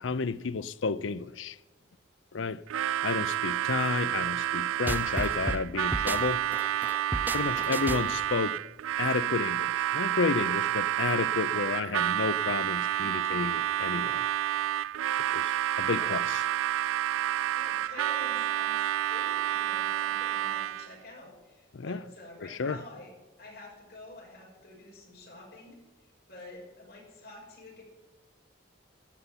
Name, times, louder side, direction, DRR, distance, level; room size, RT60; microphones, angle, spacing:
voice 1, 0.0-1.6 2.3-2.6 3.0-6.4 7.3-8.6 9.0-14.3 15.2-16.4 21.7-22.0 22.4-22.8, left 4 dB, 75° left, 0.5 m, -31 dB
Harmonica, 2.7-20.9, right 12 dB, 90° right, 0.3 m, -29 dB
sound 1, 4.9-8.3, right 1 dB, 10° right, 0.4 m, -34 dB
voice 2, 15.9-16.3 17.5-18.8 19.1-23.1 23.4-27.8, left 2 dB, 50° left, 5.8 m, -48 dB
15.0 x 5.6 x 9.8 m
head